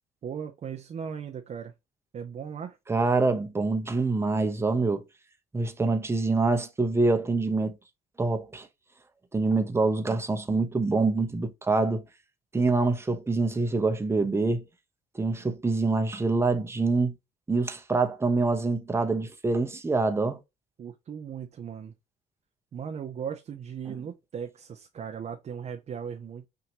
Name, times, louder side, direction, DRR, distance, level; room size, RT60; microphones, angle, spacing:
voice 1, 0.2-1.7 2.1-2.8 15.4-15.6 20.8-21.9 22.7-26.5, right 7 dB, 40° right, 0.7 m, -37 dB
voice 2, 2.9-5.0 5.5-7.8 8.2-8.7 9.3-12.0 12.5-14.6 15.2-17.1 17.5-20.4 23.9-24.0, right 3 dB, 15° right, 0.9 m, -25 dB
5.9 x 2.8 x 2.9 m
cardioid pair, 110°, 17 cm